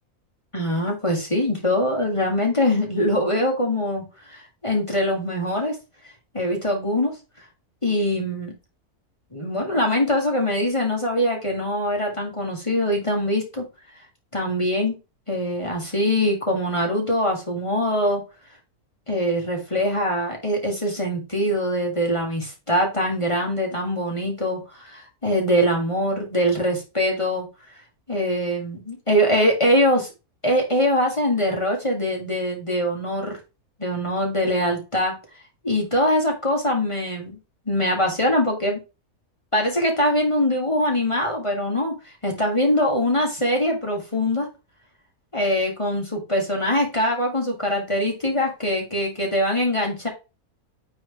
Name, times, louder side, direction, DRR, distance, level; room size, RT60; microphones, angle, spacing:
voice 1, 0.5-4.0 4.3-5.8 6.3-7.1 7.8-8.5 9.3-13.6 14.3-15.0 15.3-18.2 19.1-27.5 28.1-30.1 30.4-33.4 33.8-35.1 35.6-37.4 37.7-38.8 39.5-41.9 42.2-44.5 45.3-50.1, equal, 20° left, 0 dB, 1.6 m, -23 dB
8.8 x 3.2 x 3.8 m, 0.29 s
omnidirectional pair, 1.6 m